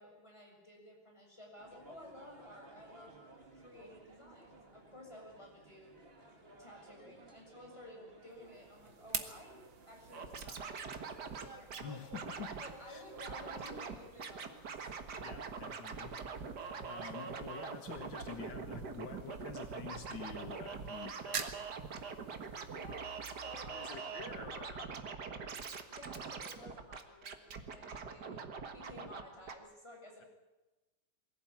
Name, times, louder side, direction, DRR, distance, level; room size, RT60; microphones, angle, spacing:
voice 1, 0.0-3.1 3.5-6.0 6.6-12.0 12.5-14.6 15.1-15.2 17.1-17.3 22.7-24.2 25.9-28.4 28.7-30.3, left 1 dB, 15° left, 0 dB, 6.8 m, -54 dB
sound 1, 1.6-19.7, right 3 dB, 30° right, 2.4 m, -58 dB
sound 2, 8.3-25.2, right 6 dB, 90° right, 2.3 m, -50 dB
Scratching (performance technique), 10.1-11.8 12.1-12.7 13.2-13.9 14.2-29.2 29.5-29.6, right 5 dB, 60° right, 2.1 m, -43 dB
voice 2, 11.8-12.5 12.9-13.0 15.2-16.1 16.9-21.8 22.0-22.1 22.5-22.7 23.7-24.9, left 7 dB, 75° left, 6 dB, 2.1 m, -48 dB
23.0 x 16.0 x 8.8 m, 1.1 s
omnidirectional pair, 2.0 m